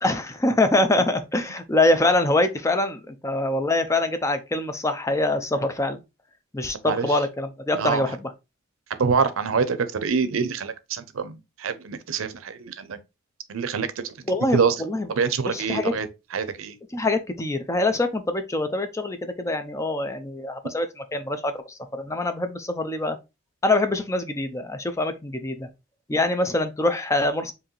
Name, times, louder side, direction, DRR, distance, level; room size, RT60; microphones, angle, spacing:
voice 1, 0.0-6.0 6.5-8.3 14.3-15.1 15.5-15.9 16.9-20.9 21.1-23.2 23.6-25.7 26.1-27.5, left 2 dB, 15° left, 0.4 m, -24 dB
voice 2, 9.0-13.0 13.5-14.1 14.5-14.7 15.2-16.1 16.3-16.7, right 5 dB, 90° right, 0.6 m, -25 dB
4.7 x 2.7 x 3.1 m
head